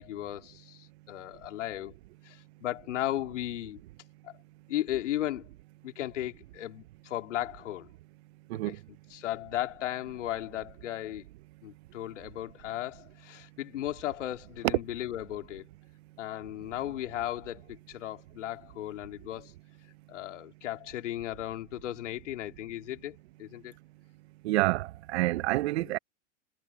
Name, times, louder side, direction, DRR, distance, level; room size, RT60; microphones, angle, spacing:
voice 1, 0.0-1.9 2.2-3.8 4.2-4.3 4.7-5.5 5.8-7.9 8.7-8.8 9.1-11.3 11.6-15.7 16.2-19.5 20.1-23.7 25.8-26.0, left 13 dB, 70° left, 3.1 m, -36 dB
voice 2, 24.4-26.0, right 18 dB, 60° right, 1.2 m, -27 dB
hypercardioid pair, 120°, 37 cm